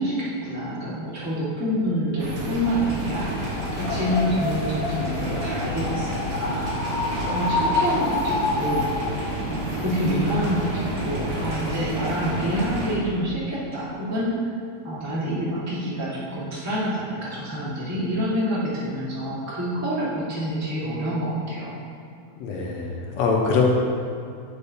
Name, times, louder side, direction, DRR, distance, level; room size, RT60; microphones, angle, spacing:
voice 1, 0.0-3.3 3.8-7.0 7.3-8.9 9.5-14.3 14.8-21.8, equal, 25° right, -8 dB, 0.3 m, -27 dB
sound 1, 2.2-12.9, right 1 dB, 60° right, 2.5 m, -30 dB
sound 2, 3.4-9.2, left 3 dB, 90° left, 1.3 m, -28 dB
voice 2, 22.4-23.6, left 5 dB, 70° left, -1 dB, 1.9 m, -23 dB
10.0 x 6.7 x 2.7 m, 2.4 s
omnidirectional pair, 3.6 m